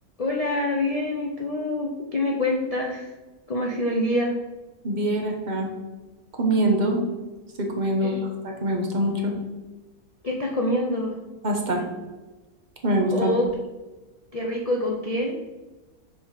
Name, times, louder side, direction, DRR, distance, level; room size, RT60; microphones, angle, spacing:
voice 1, 0.2-3.1 3.5-4.3 8.0-8.3 10.2-11.1 13.1-13.5 14.3-15.4, left 1 dB, 75° left, -1 dB, 0.3 m, -26 dB
voice 2, 4.8-5.7 6.3-7.0 7.6-8.1 8.4-9.3 11.4-11.8 12.8-13.3, right 1 dB, 40° right, 2 dB, 0.8 m, -24 dB
6.1 x 3.5 x 4.7 m, 1.2 s
omnidirectional pair, 1.6 m